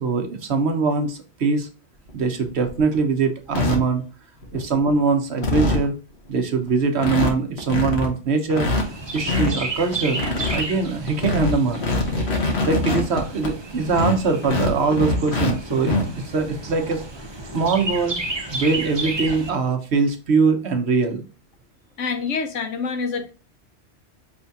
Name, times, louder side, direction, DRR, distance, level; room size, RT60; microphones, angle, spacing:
voice 1, 0.0-1.7 2.1-4.0 4.5-5.9 6.3-8.7 9.1-10.2 10.5-11.8 12.6-16.0 16.2-17.0 17.5-18.1 18.5-21.2, right 4 dB, 65° right, 5 dB, 1.1 m, -22 dB
sound 1, 2.1-2.2 2.6-2.9 3.5-3.8 4.4-4.8 5.1-5.2 5.4-5.9 6.4-6.5 6.7-6.8 7.0-7.3 7.6-8.1 8.5-9.5 9.9-10.6 11.1-13.5 13.9-15.5 15.8-16.0 17.4-17.5 17.9-18.0 19.2-19.4, left 2 dB, 60° left, 1.5 m, -23 dB
Chirp tweet, 8.7-19.5, right 2 dB, 25° right, 0.7 m, -32 dB
voice 2, 22.0-23.3, left 5 dB, 85° left, 6 dB, 1.1 m, -26 dB
5.5 x 3.4 x 2.7 m, 0.35 s
omnidirectional pair, 1.2 m